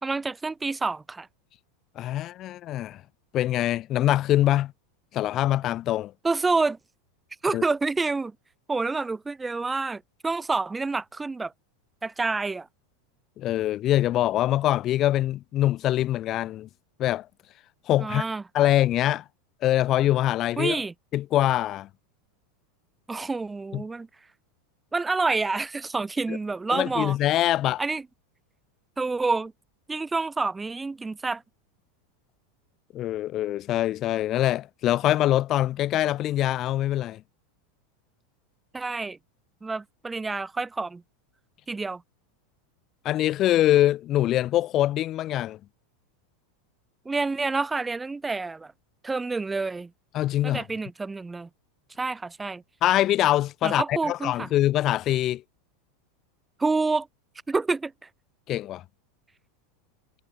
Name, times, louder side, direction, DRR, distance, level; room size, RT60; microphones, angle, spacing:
voice 1, 0.0-1.3 6.2-6.8 7.4-8.3 8.7-11.5 12.0-12.7 18.0-18.4 20.6-20.9 23.1-24.1 24.9-27.2 27.8-28.0 29.0-29.5 29.9-31.4 38.7-39.2 39.6-41.0 41.7-42.0 47.1-48.7 49.0-49.9 50.4-51.5 52.0-52.6 53.6-54.5 56.6-57.1 57.5-57.9, right 3 dB, 15° right, 3.6 m, -28 dB
voice 2, 2.0-3.0 3.3-4.7 5.1-6.1 7.5-7.6 13.4-16.7 17.0-17.3 17.9-18.2 18.5-19.2 19.6-20.8 21.1-21.9 23.7-23.8 26.3-26.4 26.7-27.8 32.9-37.2 43.0-45.6 50.1-50.6 52.8-55.4 58.5-58.8, left 13 dB, 40° left, 4.1 m, -24 dB
hypercardioid pair, 95°, 0 cm